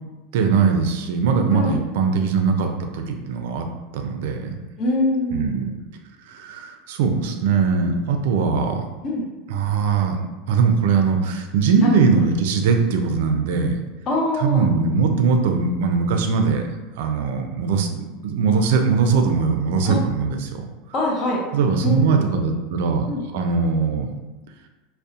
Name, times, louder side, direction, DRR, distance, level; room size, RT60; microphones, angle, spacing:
voice 1, 0.3-3.7 3.9-4.6 5.3-5.7 6.3-8.8 9.5-13.8 14.4-16.7 17.0-20.6 21.5-23.1 23.3-24.1, right 5 dB, 75° right, 5 dB, 0.3 m, -21 dB
voice 2, 1.5-1.8 4.8-5.8 9.0-9.3 11.8-11.9 14.1-14.7 19.8-20.0 20.9-21.4 21.8-22.5 23.1-23.5, left 1 dB, 35° left, -3 dB, 0.5 m, -24 dB
2.7 x 2.0 x 2.4 m, 1.1 s
supercardioid pair, 135°, 0 cm